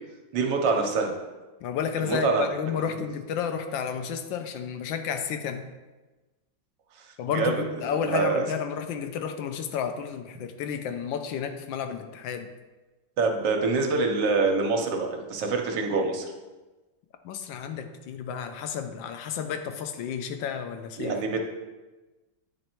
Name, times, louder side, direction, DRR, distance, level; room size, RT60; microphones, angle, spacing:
voice 1, 0.3-1.1 2.0-2.5 2.9-3.0 7.0-7.1 7.3-7.5 8.0-8.5 13.2-16.3 21.0-21.4, right 4 dB, 75° right, 3 dB, 1.4 m, -25 dB
voice 2, 1.6-5.6 7.2-12.5 17.2-21.1, left 7 dB, 80° left, 7 dB, 1.3 m, -31 dB
8.9 x 3.2 x 4.4 m, 1.2 s
omnidirectional pair, 2.1 m